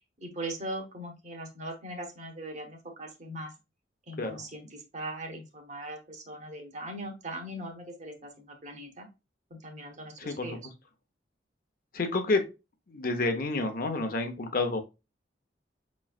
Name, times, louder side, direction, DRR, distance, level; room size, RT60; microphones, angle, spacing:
voice 1, 0.2-3.5 4.1-9.1 9.5-10.7, right 1 dB, 40° right, 3 dB, 1.1 m, -40 dB
voice 2, 10.2-10.6 11.9-12.4 12.9-14.8, left 3 dB, 50° left, 6 dB, 0.7 m, -29 dB
5.9 x 3.1 x 2.3 m, 0.26 s
head